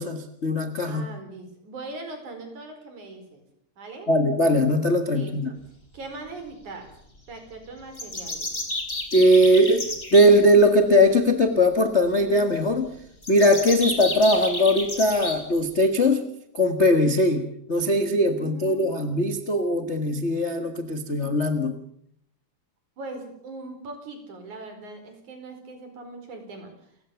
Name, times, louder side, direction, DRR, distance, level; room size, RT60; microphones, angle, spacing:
voice 1, 0.0-1.0 4.1-5.5 9.1-12.9 13.3-16.2 16.5-21.8, equal, 40° left, 6 dB, 1.0 m, -20 dB
voice 2, 0.9-3.4 3.8-4.1 5.1-5.6 5.9-6.9 7.3-8.5 18.4-19.4 23.0-26.7, right 2 dB, 65° right, 6 dB, 5.9 m, -40 dB
sound 1, 7.9-10.3 13.2-15.4, left 2 dB, 15° left, 4.1 m, -31 dB
29.0 x 16.0 x 7.1 m, 0.72 s
omnidirectional pair, 3.8 m